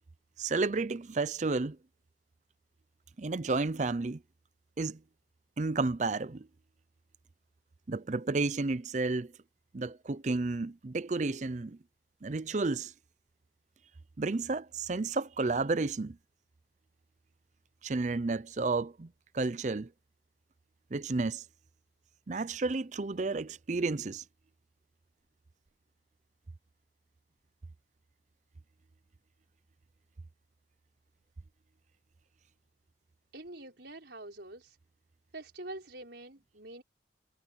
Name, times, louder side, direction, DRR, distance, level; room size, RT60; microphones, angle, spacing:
voice 1, 0.4-1.8 3.2-4.2 4.8-5.0 5.6-6.5 7.9-9.3 9.7-11.8 12.2-12.9 14.2-16.2 17.8-19.1 19.3-19.9 20.9-21.4 22.3-24.2, right 3 dB, 40° right, 0.5 m, -31 dB
voice 2, 33.3-34.8 35.3-36.8, right 2 dB, 65° right, 4.9 m, -45 dB
head